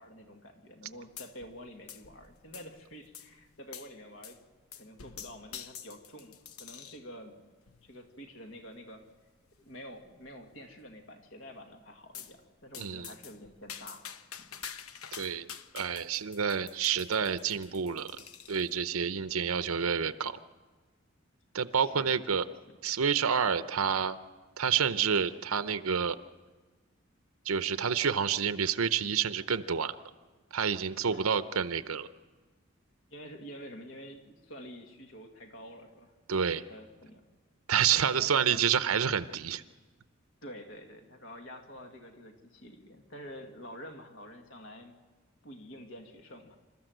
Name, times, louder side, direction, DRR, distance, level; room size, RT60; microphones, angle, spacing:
voice 1, 0.0-4.4 4.7-7.5 7.8-9.0 9.6-14.0 14.4-14.5 21.8-22.8 31.1-31.3 33.1-36.1 36.5-37.2 38.1-38.6 40.4-45.0 45.4-46.6, equal, 65° left, 4 dB, 2.0 m, -48 dB
sound 1, 1.2-1.6 1.9-2.8 3.1-3.3 3.7-3.9 4.2-4.4 4.7-7.1 7.7-8.0 8.7-8.8 9.1-9.2 9.5-9.6 10.0-10.5 12.1-12.3 12.7-18.7, left 8 dB, 90° left, 0.9 m, -47 dB
voice 2, 12.8-13.1 15.2-15.5 15.7-18.1 18.5-20.4 21.5-22.4 22.8-24.2 24.6-26.2 27.5-30.0 30.5-32.1 36.3-36.6 37.7-39.6, right 7 dB, 85° right, 12 dB, 0.7 m, -28 dB
28.0 x 13.5 x 7.9 m, 1.3 s
head